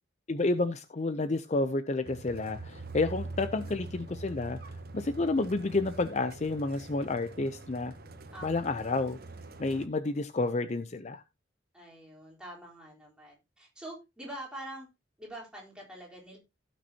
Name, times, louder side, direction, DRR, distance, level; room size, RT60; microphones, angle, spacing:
voice 1, 0.3-4.6 4.9-7.9 8.4-9.2 9.6-11.2, left 2 dB, 35° left, 0.5 m, -30 dB
sound 1, 2.0-9.9, right 2 dB, 50° right, 1.1 m, -44 dB
voice 2, 8.3-8.6 11.7-14.9 15.2-16.4, right 1 dB, 5° right, 3.7 m, -45 dB
16.5 x 6.2 x 2.8 m
head